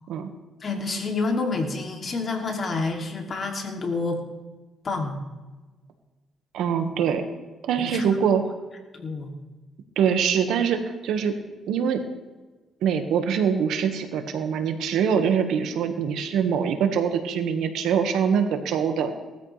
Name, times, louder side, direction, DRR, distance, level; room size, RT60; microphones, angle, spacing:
voice 1, 0.6-4.2 4.8-5.2 7.8-8.1 8.9-9.3, left 3 dB, 45° left, 2 dB, 2.9 m, -28 dB
voice 2, 6.5-7.2 7.7-8.4 10.0-11.3 11.7-12.0 12.8-19.1, right 7 dB, 80° right, 6 dB, 1.7 m, -23 dB
19.5 x 13.5 x 3.5 m, 1.2 s
cardioid pair, 90°, 0 cm